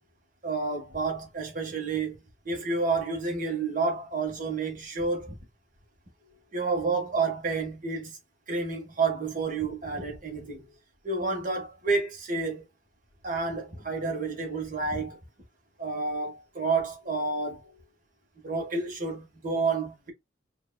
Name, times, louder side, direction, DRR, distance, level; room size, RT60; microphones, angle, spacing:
voice 1, 0.4-5.3 6.5-8.2 8.5-10.6 11.0-12.6 13.2-15.2 15.8-17.7 18.4-20.1, right 4 dB, 45° right, 1.6 m, -30 dB
4.7 x 2.9 x 2.4 m
head